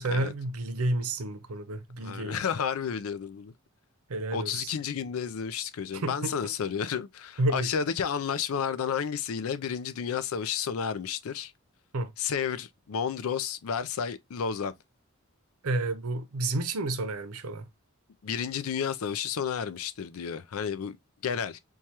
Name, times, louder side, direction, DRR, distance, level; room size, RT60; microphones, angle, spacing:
voice 1, 0.0-2.4 4.1-4.7 5.9-6.5 7.4-7.7 11.9-12.1 15.6-17.6, right 2 dB, 85° right, 0.6 m, -30 dB
voice 2, 2.0-3.5 4.3-11.5 12.2-14.7 18.2-21.0 21.2-21.6, left 7 dB, 75° left, 0.4 m, -31 dB
4.6 x 2.3 x 2.8 m
head